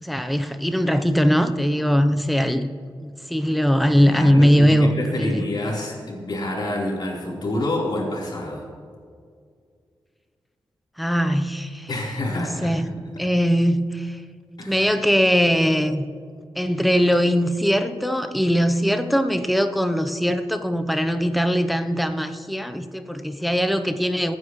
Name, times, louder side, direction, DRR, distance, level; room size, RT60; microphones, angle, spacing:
voice 1, 0.0-2.7 3.0-4.9 5.2-5.4 11.0-11.9 12.3-12.9 13.2-14.2 14.7-16.1 16.6-24.3, equal, ahead, 8 dB, 0.8 m, -21 dB
voice 2, 3.9-8.6 11.9-12.9 14.6-14.9, left 1 dB, 60° left, -3 dB, 4.0 m, -28 dB
24.5 x 9.8 x 3.2 m, 2.1 s
cardioid pair, 85°, 9 cm